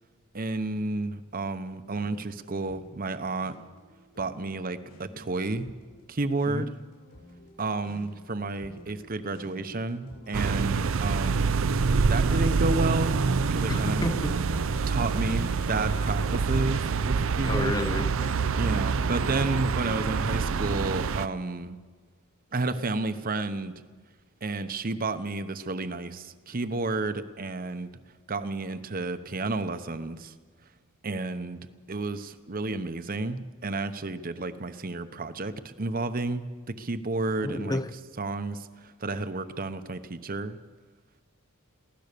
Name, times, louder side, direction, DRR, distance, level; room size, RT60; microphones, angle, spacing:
voice 1, 0.3-3.5 4.2-5.7 6.1-6.7 7.6-11.6 12.1-13.2 13.4-14.0 14.9-17.7 18.6-21.8 22.5-23.7 24.4-28.0 28.3-30.3 31.0-31.6 31.9-37.8 38.2-40.6, right 2 dB, 40° right, 0.9 m, -31 dB
sound 1, 1.9-19.6, left 1 dB, 65° left, 7.3 m, -47 dB
voice 2, 6.5-6.8 10.6-10.9 13.7-14.4 17.4-18.3 37.4-38.0, left 1 dB, 15° left, 0.6 m, -31 dB
sound 2, 10.3-21.3, right 5 dB, 60° right, 0.5 m, -26 dB
23.5 x 16.5 x 6.8 m
head